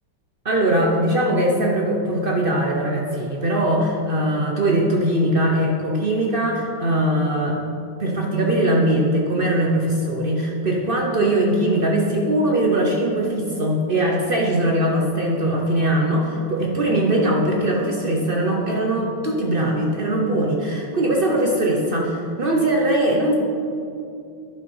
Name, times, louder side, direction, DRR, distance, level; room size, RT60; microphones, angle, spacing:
voice 1, 0.4-7.6 8.0-23.3, right 1 dB, 55° right, -1 dB, 0.6 m, -21 dB
11.0 x 5.4 x 5.5 m, 2.5 s
omnidirectional pair, 2.3 m